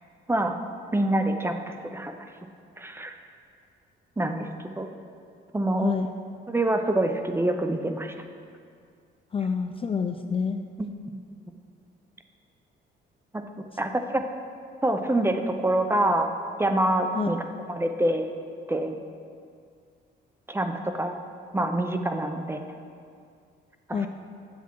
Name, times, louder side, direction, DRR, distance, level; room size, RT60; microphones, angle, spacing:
voice 1, 0.9-2.1 2.8-3.1 4.2-4.5 4.8-4.9 5.5-5.9 6.5-8.1 10.8-10.9 13.3-13.4 13.8-14.2 14.8-16.3 16.6-17.4 17.7-18.3 18.7-19.0 20.5-21.2 21.5-22.6 24.0-24.1, right 1 dB, 10° right, 6 dB, 0.6 m, -25 dB
voice 2, 9.3-10.6 17.1-17.3 23.9-24.1, left 6 dB, 30° left, 7 dB, 0.4 m, -27 dB
8.4 x 7.1 x 4.5 m, 2.3 s
cardioid pair, 90°, 20 cm